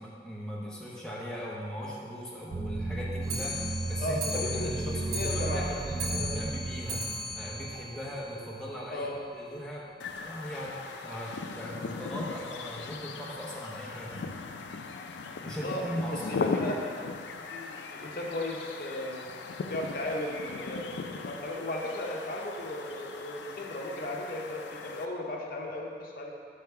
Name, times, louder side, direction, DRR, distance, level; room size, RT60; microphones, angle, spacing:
voice 1, 0.0-7.0 7.3-9.1 9.3-10.8 11.0-14.3 15.4-16.2, equal, 5° left, -6 dB, 0.8 m, -39 dB
sound 1, 2.5-8.3, right 3 dB, 45° right, 0.3 m, -35 dB
Clock, 3.2-8.7 9.1-9.2 9.4-9.5 9.8-9.9 10.2-10.3 11.0-11.1 11.8-11.9 12.6-12.7, left 1 dB, 70° right, 1.2 m, -38 dB
voice 2, 4.0-5.7 6.1-6.4 8.9-9.2 15.5-15.8 16.1-17.2 17.5-19.2 19.7-26.3, left 1 dB, 50° left, -1 dB, 0.7 m, -36 dB
sound 2, 10.0-25.1, left 4 dB, 85° left, 0.4 m, -38 dB
5.6 x 3.4 x 5.6 m, 2.2 s
head